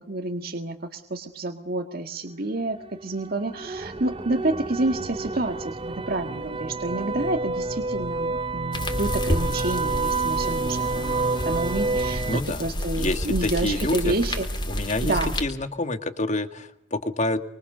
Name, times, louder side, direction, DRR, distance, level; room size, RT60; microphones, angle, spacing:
voice 1, 0.0-14.5 15.0-15.3, right 2 dB, 55° right, 4 dB, 1.8 m, -29 dB
sound 1, 2.6-12.4, right 3 dB, 30° right, 0.9 m, -29 dB
sound 2, 8.7-15.4, left 1 dB, 25° left, 4.1 m, -30 dB
voice 2, 12.3-12.7 13.0-14.1 14.7-17.4, left 2 dB, 40° left, 9 dB, 1.9 m, -28 dB
25.5 x 24.0 x 6.8 m, 0.74 s
head